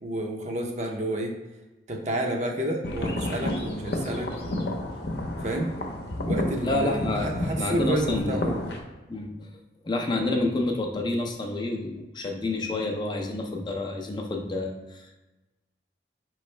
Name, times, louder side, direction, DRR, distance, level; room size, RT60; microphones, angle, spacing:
voice 1, 0.0-1.3 1.9-4.6 5.4-5.7 6.3-8.7, right 1 dB, 40° right, 2 dB, 0.6 m, -30 dB
sound 1, 2.8-8.8, left 1 dB, 70° left, 0.7 m, -31 dB
voice 2, 6.6-7.3 7.6-8.4 9.1-9.5 9.8-15.2, left 2 dB, 25° left, 2 dB, 0.4 m, -29 dB
5.1 x 3.1 x 3.2 m, 1.1 s
head